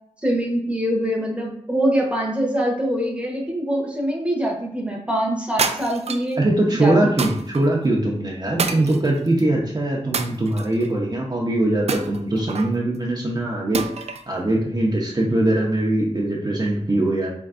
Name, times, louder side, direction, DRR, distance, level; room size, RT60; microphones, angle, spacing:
voice 1, 0.2-6.4 6.8-7.1, equal, 10° right, -1 dB, 1.0 m, -24 dB
sound 1, 5.6-6.3 7.2-7.6 8.6-9.4 10.1-10.9 11.9-12.8 13.7-14.3, right 5 dB, 60° right, 0.4 m, -27 dB
voice 2, 6.4-13.8 14.3-17.3, right 1 dB, 35° right, -3 dB, 0.8 m, -21 dB
4.4 x 3.1 x 2.5 m, 0.67 s
wide cardioid pair, 75°, 12 cm